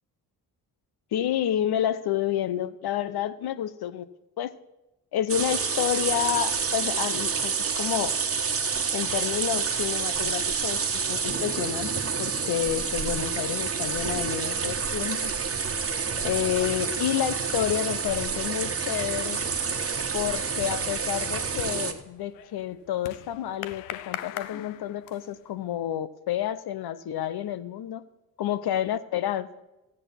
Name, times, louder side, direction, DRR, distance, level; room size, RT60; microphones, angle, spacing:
voice 1, 1.1-4.1 4.4-4.5 5.1-8.1 8.9-15.3 16.2-19.4 20.1-28.0 28.4-29.6, left 11 dB, 60° left, 14 dB, 0.9 m, -29 dB
sound 1, 5.3-21.9, right 5 dB, 30° right, 1.5 m, -28 dB
sound 2, 19.0-19.3 19.7-25.5, left 13 dB, 85° left, 0.7 m, -41 dB
14.0 x 9.2 x 5.7 m, 0.99 s
hypercardioid pair, 50°, 42 cm